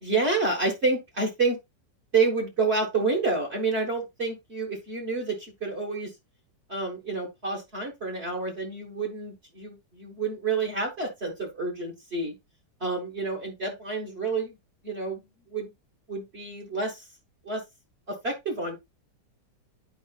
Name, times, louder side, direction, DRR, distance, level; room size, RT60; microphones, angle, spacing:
voice 1, 0.0-1.6 2.1-6.1 6.7-12.4 12.8-14.6 14.8-15.7 16.1-17.0 17.4-17.6 18.1-18.8, right 3 dB, 35° right, 1.7 m, -29 dB
10.0 x 5.0 x 2.3 m
omnidirectional pair, 2.0 m